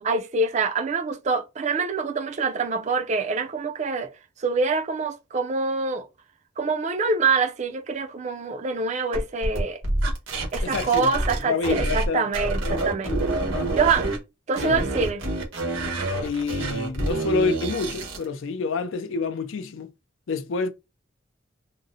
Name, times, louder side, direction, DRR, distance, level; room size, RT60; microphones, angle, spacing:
voice 1, 0.0-4.1 4.4-6.1 6.6-9.8 10.5-13.2 13.7-14.1 14.5-15.2, right 4 dB, 35° right, 0.4 m, -25 dB
sound 1, 9.1-12.1 12.3-14.2 14.5-18.2, right 2 dB, 90° right, 1.2 m, -27 dB
voice 2, 10.6-12.3 12.6-13.8 14.6-14.9 16.2-19.9 20.3-20.7, left 4 dB, 75° left, 0.4 m, -28 dB
3.7 x 2.0 x 2.7 m
head